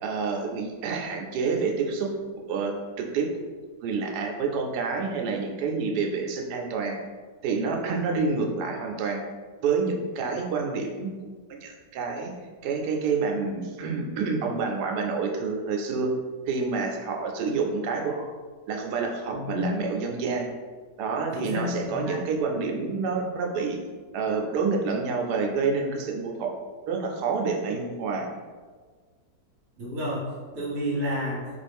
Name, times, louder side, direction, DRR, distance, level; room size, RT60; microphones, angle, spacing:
voice 1, 0.0-2.1 2.4-3.5 3.8-7.0 7.4-9.3 9.6-11.1 11.5-12.3 12.6-16.1 16.5-18.3 18.7-20.5 21.0-23.8 24.1-26.5 26.9-28.3, right 4 dB, 85° right, 2 dB, 1.2 m, -28 dB
voice 2, 19.3-19.8 21.3-22.2 29.8-31.6, left 1 dB, 55° right, -5 dB, 1.0 m, -31 dB
3.9 x 2.5 x 3.4 m, 1.5 s
omnidirectional pair, 1.7 m